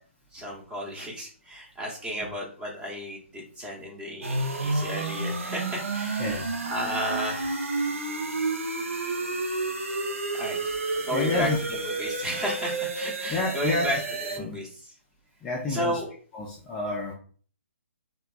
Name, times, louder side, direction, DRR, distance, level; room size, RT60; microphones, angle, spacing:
voice 1, 0.3-7.9 10.4-14.0 14.3-14.7 15.7-16.1, equal, 10° right, -3 dB, 0.8 m, -33 dB
sound 1, 4.2-14.4, right 3 dB, 90° right, 0.7 m, -30 dB
voice 2, 11.1-11.6 13.3-13.9 14.4-14.6 15.4-16.0 16.3-17.1, left 2 dB, 15° left, -3 dB, 0.4 m, -29 dB
3.2 x 2.3 x 2.2 m, 0.43 s
figure-of-eight pair, 135°, 7 cm